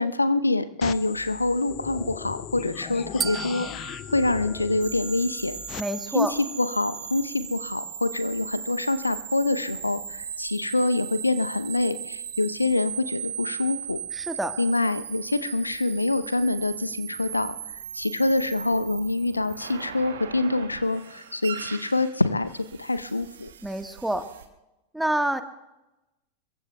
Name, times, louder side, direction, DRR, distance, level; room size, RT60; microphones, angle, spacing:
voice 1, 0.0-5.6 6.1-14.0 14.6-23.5, left 2 dB, 80° left, 14 dB, 0.7 m, -26 dB
sound 1, 0.8-5.8, left 11 dB, 35° left, 0.6 m, -38 dB
sound 2, 3.2-5.5, right 6 dB, 20° right, 0.4 m, -36 dB
sound 3, 4.8-24.4, right 8 dB, 60° right, 1.4 m, -38 dB
voice 2, 5.8-6.3 14.1-14.6 23.6-24.3 24.9-25.4, right 1 dB, 5° right, 8 dB, 1.3 m, -27 dB
28.0 x 22.5 x 2.3 m, 0.98 s
figure-of-eight pair, 90°, 0 cm